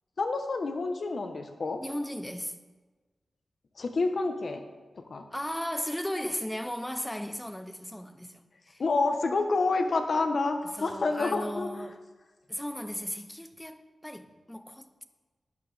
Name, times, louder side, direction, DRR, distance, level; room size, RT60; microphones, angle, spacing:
voice 1, 0.2-1.8 3.8-4.6 5.1-5.2 8.8-11.7, left 3 dB, 60° left, 1.0 m, -28 dB
voice 2, 1.8-2.5 5.3-8.8 10.7-12.0 12.5-15.0, equal, 5° left, 0.6 m, -36 dB
13.5 x 9.2 x 3.4 m
wide cardioid pair, 115°, 0 cm